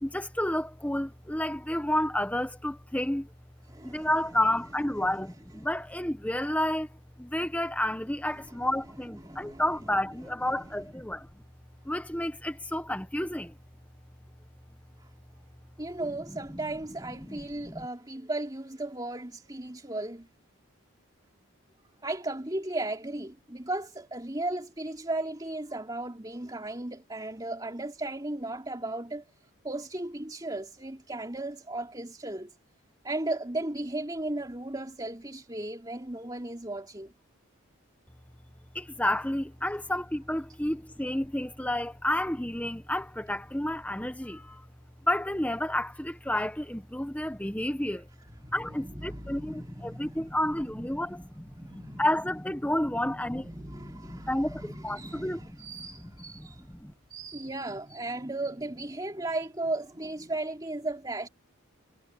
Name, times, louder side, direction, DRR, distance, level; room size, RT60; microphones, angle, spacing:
voice 1, 0.0-3.3 3.8-6.9 7.2-11.3 11.8-13.5 17.3-17.9 38.7-44.7 45.0-48.1 48.5-55.5 56.8-56.9, left 1 dB, 5° left, 1.2 m, -30 dB
voice 2, 3.7-4.1 9.2-9.6 10.5-10.6 15.8-20.3 22.0-29.2 29.6-32.5 33.0-37.1 48.4-50.9 51.5-52.0 52.8-56.7 57.1-61.3, right 2 dB, 20° right, 3.1 m, -36 dB
head